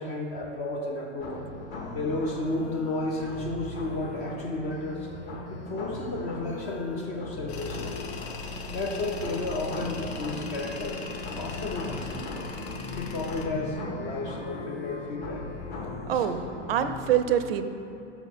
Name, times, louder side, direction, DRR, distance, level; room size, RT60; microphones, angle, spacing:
voice 1, 0.0-1.5 1.9-5.1 5.5-8.0 8.7-11.0 11.4-12.2 12.9-15.5 16.1-16.3, left 2 dB, 20° left, 0 dB, 0.3 m, -32 dB
sound 1, 1.2-17.2, left 2 dB, 35° left, 1.2 m, -38 dB
Tools, 7.5-13.5, left 4 dB, 55° left, 0.7 m, -40 dB
voice 2, 16.1-16.4 16.7-17.7, right 10 dB, 55° right, 10 dB, 0.5 m, -25 dB
5.7 x 4.2 x 5.6 m, 2.8 s
figure-of-eight pair, 105°, 37 cm